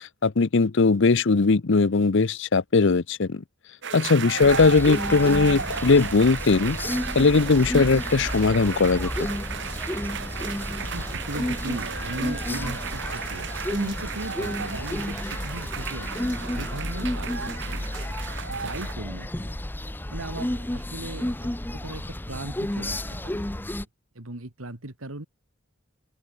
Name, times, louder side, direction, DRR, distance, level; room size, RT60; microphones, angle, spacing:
voice 1, 0.2-3.4 3.9-6.8 7.1-9.1, left 4 dB, 60° left, 0.7 m, -19 dB
sound 1, 3.8-18.9, right 6 dB, 60° right, 2.2 m, -34 dB
sound 2, 4.4-23.8, left 1 dB, 10° left, 0.6 m, -32 dB
voice 2, 10.8-18.2 18.5-19.5 20.1-23.5 24.1-25.3, right 2 dB, 85° right, 2.5 m, -38 dB
open air
head